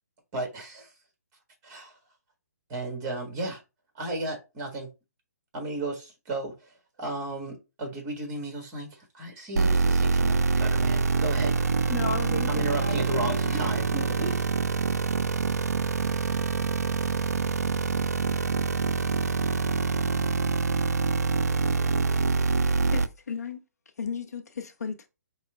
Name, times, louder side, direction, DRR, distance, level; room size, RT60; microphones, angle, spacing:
voice 1, 0.3-1.0 1.6-2.0 2.7-3.6 3.9-4.9 5.5-11.6 12.5-13.9, right 2 dB, 25° right, 1.5 m, -34 dB
sound 1, 9.6-23.1, right 4 dB, 65° right, 0.4 m, -25 dB
voice 2, 11.9-13.6 13.9-14.5, left 3 dB, 15° left, 0.8 m, -34 dB
voice 3, 22.9-23.6 24.0-25.1, left 6 dB, 65° left, 0.7 m, -35 dB
5.2 x 2.2 x 3.4 m
figure-of-eight pair, 135°, 9 cm